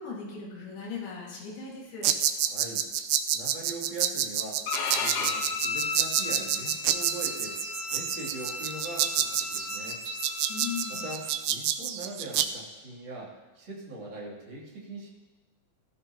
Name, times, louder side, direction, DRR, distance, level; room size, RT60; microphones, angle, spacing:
voice 1, 0.0-2.2 10.5-11.1, left 6 dB, 90° left, -4 dB, 4.1 m, -38 dB
sound 1, 2.0-12.5, right 11 dB, 90° right, 1.8 m, -28 dB
voice 2, 2.5-2.9 3.2-10.0 10.9-15.1, right 2 dB, 35° right, -5 dB, 3.4 m, -41 dB
Bowed string instrument, 4.7-11.2, left 5 dB, 70° left, 2.6 m, -35 dB
19.5 x 13.5 x 3.0 m, 1.2 s
omnidirectional pair, 4.3 m